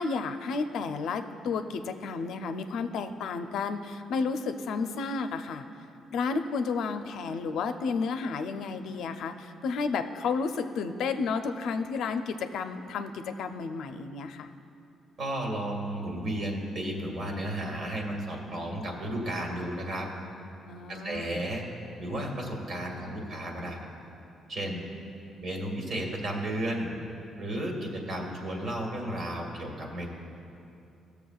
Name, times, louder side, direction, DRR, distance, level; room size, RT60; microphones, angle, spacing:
voice 1, 0.0-5.6 6.1-14.5 20.7-21.4 24.6-25.1, left 4 dB, 80° left, 8 dB, 0.5 m, -32 dB
voice 2, 15.2-20.1 20.9-21.6 22.0-23.8 24.5-24.8 25.4-26.9 27.4-30.1, right 1 dB, 60° right, 0 dB, 1.7 m, -33 dB
18.0 x 6.9 x 2.3 m, 2.7 s
cardioid pair, 90°, 0 cm